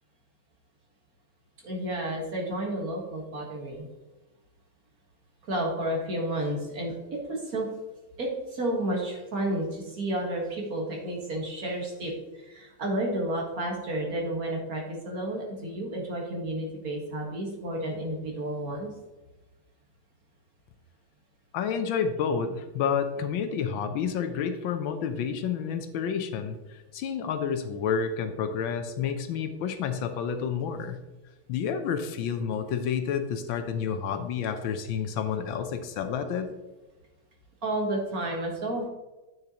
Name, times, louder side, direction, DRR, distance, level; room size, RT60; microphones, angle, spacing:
voice 1, 1.6-3.9 5.5-7.7 8.2-12.1 12.4-18.9 37.6-38.9, right 1 dB, 45° right, -1 dB, 1.8 m, -31 dB
voice 2, 21.5-31.0 31.5-36.5, left 7 dB, 75° left, 8 dB, 1.3 m, -30 dB
8.8 x 6.7 x 2.9 m, 1.1 s
omnidirectional pair, 2.3 m